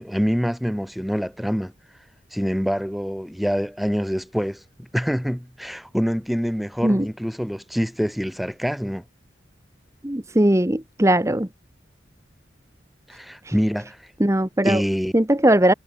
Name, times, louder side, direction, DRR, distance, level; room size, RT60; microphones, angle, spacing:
voice 1, 0.0-1.7 2.3-9.0 13.1-14.0 14.6-15.1, equal, ahead, 7.9 m, -25 dB
voice 2, 10.0-11.5 14.2-14.8 15.1-15.7, right 1 dB, 15° right, 1.2 m, -19 dB
head